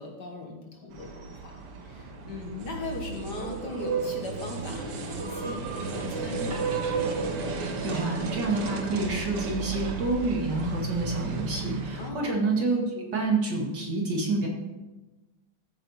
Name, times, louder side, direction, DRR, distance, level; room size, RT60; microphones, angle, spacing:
voice 1, 0.0-6.8 12.0-12.3, left 2 dB, 55° left, 2 dB, 1.8 m, -38 dB
sound 1, 0.9-12.1, right 4 dB, 85° right, 2.3 m, -33 dB
sound 2, 6.0-6.1 6.5-7.0 7.8-8.4 9.5-10.4, right 3 dB, 70° right, 2.8 m, -46 dB
voice 2, 7.6-14.5, right 3 dB, 50° right, 0 dB, 2.5 m, -28 dB
14.5 x 8.8 x 4.2 m, 1.1 s
omnidirectional pair, 2.4 m